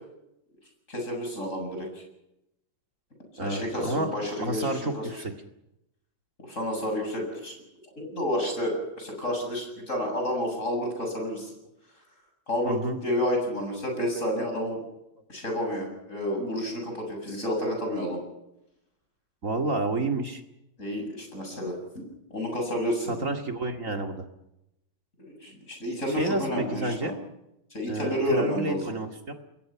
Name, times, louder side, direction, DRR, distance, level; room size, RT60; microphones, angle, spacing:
voice 1, 0.9-2.0 3.3-5.1 6.5-7.5 7.9-11.5 12.5-12.8 13.0-14.8 15.3-18.2 20.8-22.0 22.3-23.2 25.2-27.1 27.7-28.8, left 1 dB, 35° left, 2 dB, 8.1 m, -30 dB
voice 2, 3.4-4.1 4.4-5.3 12.6-13.0 19.4-20.4 23.1-24.3 26.1-27.1 27.9-29.3, right 2 dB, 40° right, 4 dB, 2.5 m, -30 dB
28.0 x 22.0 x 5.9 m, 0.86 s
omnidirectional pair, 2.1 m